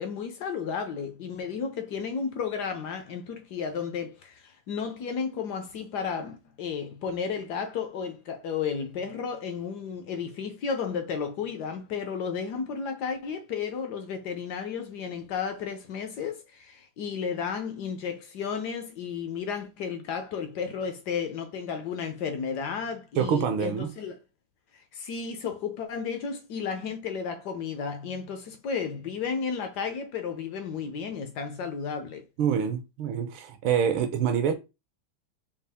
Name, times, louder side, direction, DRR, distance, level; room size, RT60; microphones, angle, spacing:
voice 1, 0.0-24.2 24.9-32.2, left 6 dB, 70° left, 1.0 m, -33 dB
voice 2, 23.2-23.9 32.4-34.5, right 7 dB, 75° right, 1.4 m, -26 dB
5.3 x 2.4 x 3.4 m
omnidirectional pair, 2.4 m